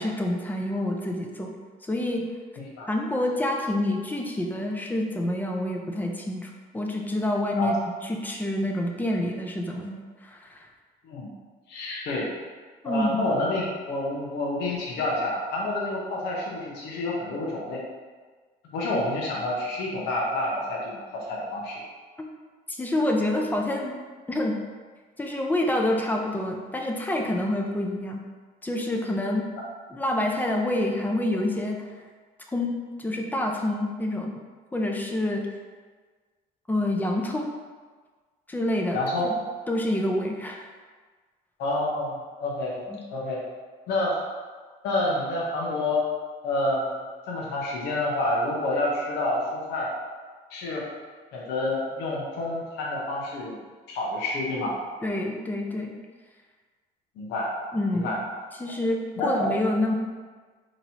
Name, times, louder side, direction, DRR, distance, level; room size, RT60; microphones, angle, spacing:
voice 1, 0.0-1.5 1.9-2.3 2.9-7.7 8.1-10.6 12.8-13.2 22.7-24.0 24.3-24.6 25.2-28.2 28.6-29.5 29.9-31.9 32.5-32.7 33.0-34.3 34.7-35.5 36.7-37.5 38.5-39.0 39.2-39.3 39.7-40.6 42.9-43.0 55.0-56.0 57.7-58.2 58.6-59.9, left 1 dB, 10° left, 1 dB, 0.5 m, -27 dB
voice 2, 11.7-12.3 12.8-17.8 18.7-21.8 38.9-39.3 41.6-42.1 42.4-42.8 43.1-43.4 43.9-44.1 44.8-46.0 46.4-46.9 47.3-49.9 50.5-50.8 51.3-53.6 53.9-54.8 57.2-57.5 58.0-58.1 59.2-59.5, left 2 dB, 80° left, -4 dB, 0.9 m, -28 dB
4.0 x 3.0 x 2.8 m, 1.4 s
cardioid pair, 110°, 17 cm